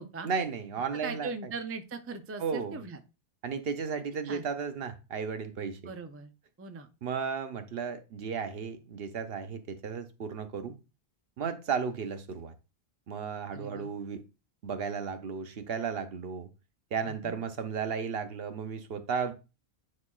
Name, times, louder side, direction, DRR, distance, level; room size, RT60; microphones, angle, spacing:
voice 1, 0.2-1.3 2.4-2.8 3.4-5.8 7.0-10.7 11.4-12.5 13.1-14.2 14.6-16.5 16.9-19.3, right 6 dB, 65° right, 0.9 m, -34 dB
voice 2, 1.0-3.0 4.2-4.5 5.9-6.3 6.6-6.9 13.5-13.9, right 4 dB, 20° right, 0.4 m, -40 dB
9.5 x 4.2 x 2.3 m
omnidirectional pair, 1.1 m